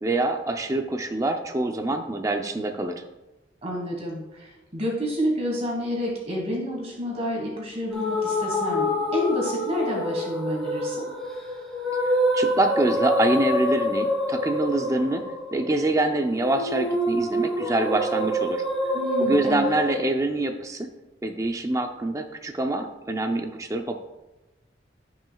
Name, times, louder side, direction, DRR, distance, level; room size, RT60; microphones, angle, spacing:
voice 1, 0.0-3.0 12.0-18.6 19.2-20.9 21.2-24.0, right 2 dB, 15° right, 4 dB, 0.5 m, -25 dB
voice 2, 3.6-11.0 18.9-19.7, equal, 35° right, -1 dB, 1.6 m, -29 dB
sound 1, 7.9-20.0, equal, 5° left, 1.7 m, -26 dB
15.5 x 6.3 x 2.3 m, 1.1 s
head